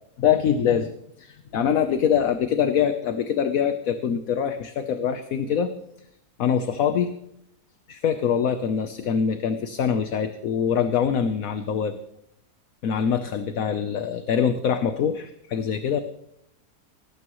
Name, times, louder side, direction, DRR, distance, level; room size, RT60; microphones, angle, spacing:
voice 1, 0.2-0.9 1.2-5.7 6.4-7.1 7.9-11.9 12.8-16.0, left 8 dB, 65° left, 9 dB, 1.2 m, -24 dB
18.5 x 16.0 x 3.1 m, 0.74 s
omnidirectional pair, 1.7 m